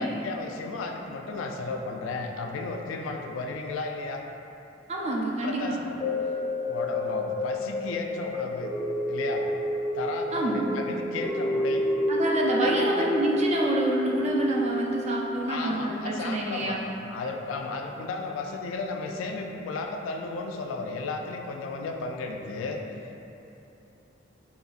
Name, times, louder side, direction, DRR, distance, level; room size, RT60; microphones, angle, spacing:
voice 1, 0.0-4.2 5.4-6.0 6.6-8.7 9.1-9.5 9.9-11.9 12.6-13.1 15.5-22.8, left 3 dB, 85° left, 3 dB, 0.3 m, -34 dB
voice 2, 4.9-5.8 10.3-10.6 12.1-16.8, right 1 dB, 35° right, -3 dB, 0.4 m, -27 dB
sound 1, 6.0-16.4 16.8-16.9, equal, 15° left, 0.6 m, -30 dB
4.0 x 3.0 x 2.4 m, 2.8 s
head